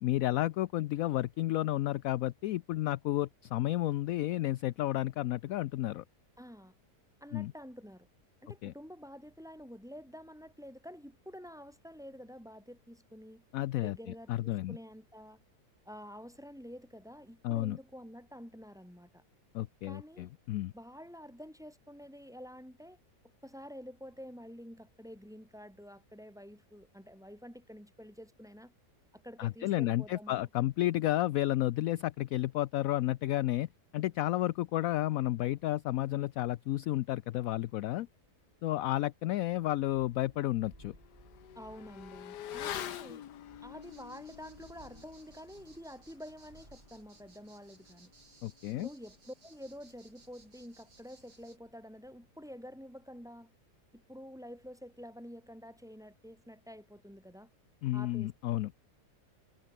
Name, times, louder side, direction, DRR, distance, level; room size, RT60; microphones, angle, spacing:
voice 1, 0.0-6.0 7.3-7.5 8.6-8.7 13.5-14.0 14.3-14.8 17.4-17.8 19.5-20.7 29.4-38.1 38.6-41.0 48.4-48.9 57.8-58.7, left 15 dB, 70° left, 0.9 m, -31 dB
voice 2, 6.4-6.8 7.2-8.1 8.4-13.4 13.8-15.4 15.8-19.2 19.9-20.3 20.7-23.0 23.4-28.7 29.1-30.5 41.5-43.2 43.6-48.1 48.7-53.5 53.9-57.5 57.9-58.3, equal, ahead, 3.0 m, -49 dB
Motorcycle / Accelerating revving vroom, 39.5-39.6 40.0-50.0 50.3-50.4, left 11 dB, 90° left, 1.6 m, -47 dB
Thunderstorm, 39.6-51.1, right 1 dB, 30° right, 5.5 m, -62 dB
sound 1, 43.8-51.6, right 3 dB, 80° right, 4.7 m, -63 dB
omnidirectional pair, 1.7 m